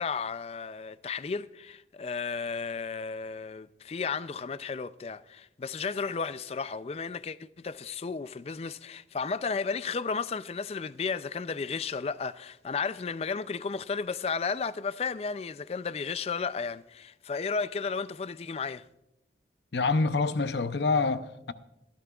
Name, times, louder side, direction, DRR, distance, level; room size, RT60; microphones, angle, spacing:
voice 1, 0.0-18.9, left 5 dB, 35° left, 0.3 m, -33 dB
voice 2, 19.7-21.5, left 3 dB, 70° left, 0.7 m, -26 dB
21.5 x 12.0 x 2.4 m
head